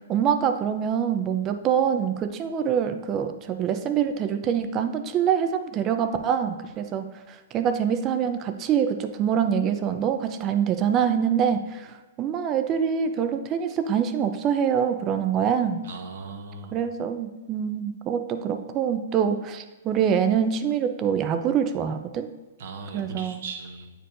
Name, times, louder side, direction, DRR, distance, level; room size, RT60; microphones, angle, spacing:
voice 1, 0.1-15.8 16.7-22.3 22.9-23.4, right 8 dB, 25° right, 8 dB, 0.5 m, -25 dB
voice 2, 15.8-16.8 22.6-23.9, right 4 dB, 60° right, 3 dB, 1.0 m, -38 dB
9.0 x 4.5 x 2.5 m, 1.2 s
hypercardioid pair, 145°, 0 cm